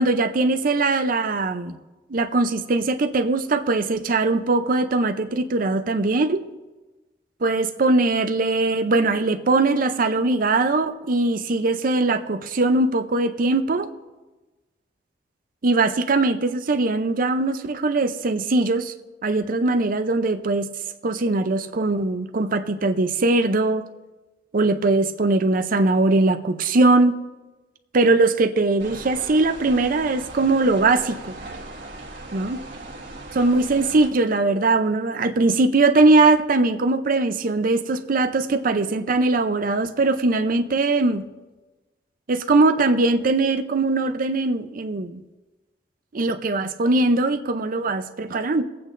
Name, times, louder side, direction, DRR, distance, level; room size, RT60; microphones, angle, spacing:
voice 1, 0.0-1.8 2.1-6.4 7.4-13.9 15.6-18.9 19.2-20.7 21.0-23.9 24.5-27.2 27.9-31.3 32.3-32.6 33.3-41.2 42.3-45.2 46.1-48.6, right 2 dB, 50° right, 8 dB, 0.6 m, -21 dB
sound 1, 28.8-34.1, right 2 dB, 75° right, 1.7 m, -38 dB
24.0 x 8.6 x 2.6 m, 1.2 s
head